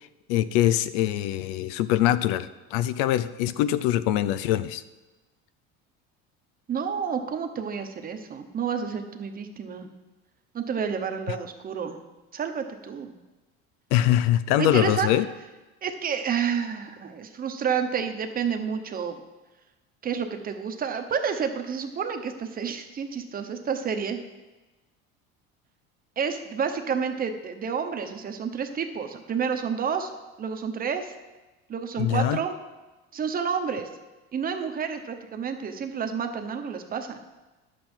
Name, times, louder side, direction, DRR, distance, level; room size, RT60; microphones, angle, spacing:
voice 1, 0.3-4.8 13.9-15.2 32.0-32.4, left 13 dB, 90° left, 15 dB, 0.6 m, -23 dB
voice 2, 6.7-9.9 10.5-12.0 12.3-13.1 14.6-15.1 15.8-19.2 20.0-24.2 26.2-30.1 30.4-31.1 31.7-32.5 33.1-33.9 34.3-37.2, right 6 dB, 30° right, 6 dB, 1.0 m, -29 dB
11.0 x 7.7 x 4.4 m, 1.1 s
cardioid pair, 130°, 29 cm